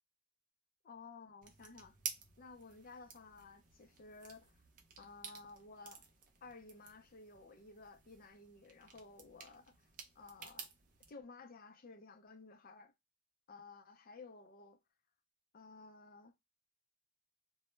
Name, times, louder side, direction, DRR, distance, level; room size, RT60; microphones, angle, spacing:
voice 1, 0.8-2.0 2.4-4.6 5.0-6.0 6.4-9.8 10.2-10.7 11.1-12.9 13.5-14.8 15.5-16.3, left 3 dB, 40° left, 0.4 m, -55 dB
sound 1, 1.4-11.1, right 6 dB, 35° right, 0.4 m, -52 dB
2.1 x 2.0 x 3.0 m
head